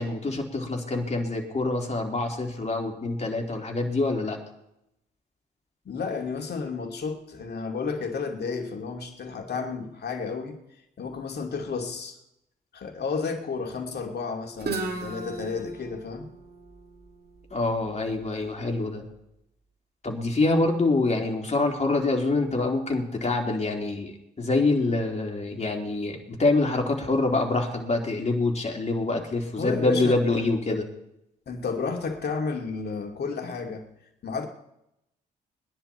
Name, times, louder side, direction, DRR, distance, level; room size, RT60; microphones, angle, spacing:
voice 1, 0.0-4.4 17.5-19.0 20.0-30.8, left 2 dB, 35° left, 1 dB, 3.6 m, -26 dB
voice 2, 5.8-10.6 11.0-12.2 12.7-16.3 29.6-30.8 31.5-33.9 34.2-34.5, left 5 dB, 55° left, 4 dB, 2.6 m, -32 dB
Guitar, 14.6-18.4, right 3 dB, 55° right, 2.5 m, -36 dB
21.0 x 10.5 x 4.5 m, 0.82 s
hypercardioid pair, 45°, 20 cm